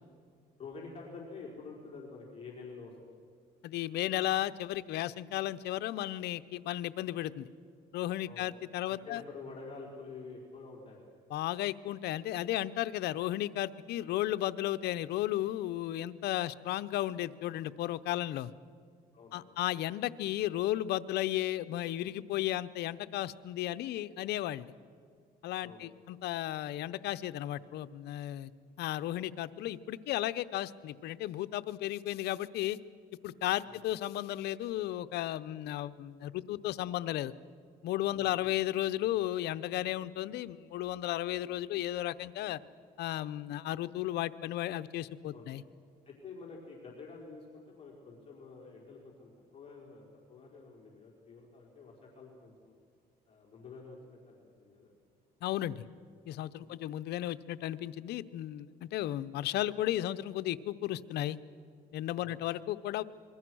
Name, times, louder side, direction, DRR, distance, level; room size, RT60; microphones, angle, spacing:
voice 1, 0.6-3.2 8.2-8.5 8.9-11.1 19.1-19.6 25.6-25.9 33.6-33.8 38.1-38.5 45.3-45.5 46.0-52.7 53.3-54.9 56.6-56.8 62.2-62.4, left 4 dB, 35° left, -2 dB, 4.6 m, -49 dB
voice 2, 3.6-7.5 7.9-9.2 11.3-18.5 19.3-24.7 25.4-28.5 28.8-32.8 33.2-37.3 37.8-42.6 43.0-45.6 55.4-55.8 56.3-61.4 61.9-63.0, left 14 dB, 75° left, 13 dB, 0.8 m, -34 dB
26.5 x 22.5 x 6.3 m, 2.1 s
cardioid pair, 110°, 17 cm